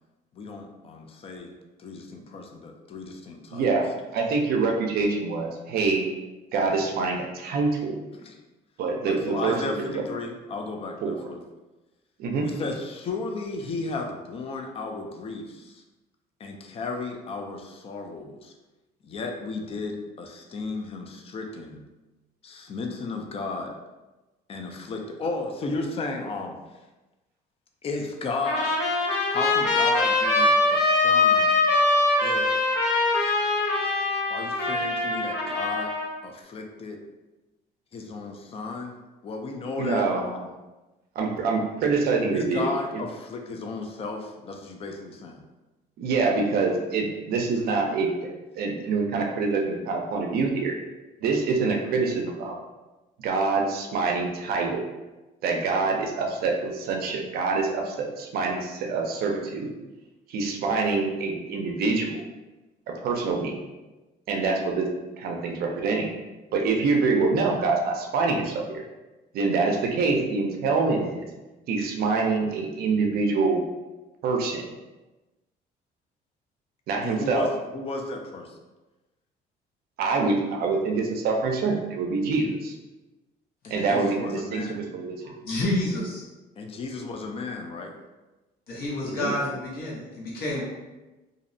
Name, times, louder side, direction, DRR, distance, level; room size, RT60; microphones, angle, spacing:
voice 1, 0.3-1.5 1.8-3.7 8.2-8.4 9.1-11.4 12.4-15.8 16.4-18.5 19.0-21.8 22.4-23.7 24.5-26.6 27.8-28.7 29.3-31.6 32.2-32.7 34.3-35.9 36.2-37.0 37.9-38.9 39.2-40.5 42.3-45.4 77.0-78.5 83.6-84.8 86.6-88.0, left 3 dB, 35° left, 3 dB, 0.4 m, -34 dB
voice 2, 3.5-6.1 6.5-7.9 8.8-10.0 11.0-11.2 12.2-12.5 39.8-40.3 41.2-42.7 46.0-50.8 51.2-52.6 53.2-54.8 55.4-59.7 60.3-62.2 63.0-63.5 64.3-64.9 65.2-66.1 66.5-68.8 69.3-71.2 71.7-73.6 74.2-74.6 76.9-77.5 80.0-82.7 83.7-85.2 89.2-89.3, right 4 dB, 65° right, 1 dB, 0.5 m, -25 dB
Trumpet, 28.4-36.1, left 2 dB, 80° left, 0.6 m, -23 dB
voice 3, 85.2-86.2 88.7-90.6, left 1 dB, 65° left, -4 dB, 0.9 m, -29 dB
2.6 x 2.0 x 2.6 m, 1.1 s
cardioid pair, 110°, 17 cm